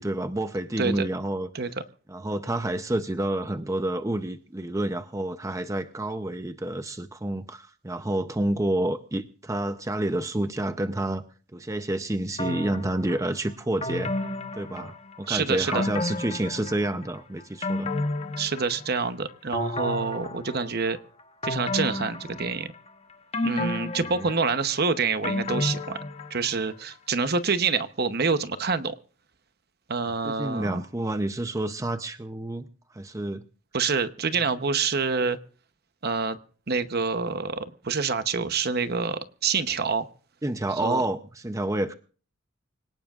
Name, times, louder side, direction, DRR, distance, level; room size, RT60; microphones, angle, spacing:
voice 1, 0.0-1.5 2.1-11.2 11.5-14.3 14.5-17.9 24.0-24.3 30.2-32.7 32.9-33.4 40.4-41.9, right 1 dB, 15° right, 8 dB, 0.6 m, -29 dB
sound 1, 12.4-13.2 13.8-15.3 15.7-17.0 17.4-19.1 19.5-20.9 21.4-22.9 23.3-26.6 26.9-27.0, left 2 dB, 30° left, 1.0 m, -31 dB
voice 2, 15.3-15.9 18.4-21.0 21.4-22.7 23.4-26.0 26.3-28.9 29.9-30.8 33.7-35.4 36.0-36.4 36.7-40.1 40.8-41.0, right 5 dB, 50° right, 11 dB, 0.9 m, -27 dB
25.5 x 18.0 x 2.5 m, 0.41 s
head